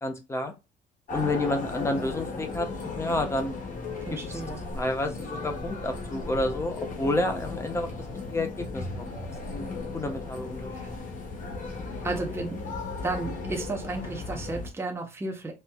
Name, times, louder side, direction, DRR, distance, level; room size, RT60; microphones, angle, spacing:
voice 1, 0.0-0.5 1.1-3.5 4.1-4.4 4.7-7.9 8.3-10.7, left 1 dB, 15° left, 0.8 m, -30 dB
sound 1, 1.1-14.7, left 3 dB, 50° left, 1.3 m, -36 dB
voice 2, 4.1-4.6 10.7-10.9 12.0-12.6 13.0-15.5, right 3 dB, 15° right, 0.8 m, -33 dB
4.3 x 2.3 x 2.2 m
cardioid pair, 110°, 17 cm